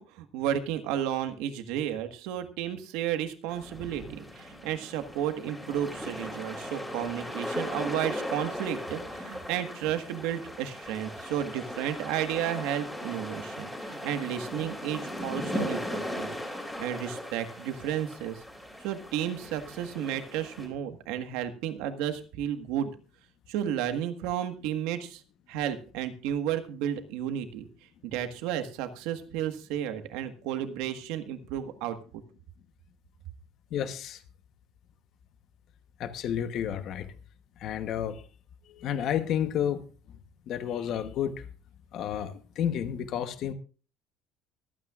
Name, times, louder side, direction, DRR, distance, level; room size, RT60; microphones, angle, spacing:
voice 1, 0.0-16.3 16.8-18.4 18.8-22.9 23.5-25.2 25.5-27.7 28.0-32.0, right 10 dB, 80° right, 8 dB, 1.6 m, -32 dB
sound 1, 3.5-20.7, left 1 dB, 5° left, 3.0 m, -38 dB
voice 2, 33.7-34.2 36.0-37.1 37.6-38.2 38.7-39.9 40.5-41.4 41.9-43.5, left 9 dB, 45° left, 10 dB, 1.1 m, -31 dB
24.5 x 9.1 x 2.5 m, 0.36 s
cardioid pair, 160°, 0 cm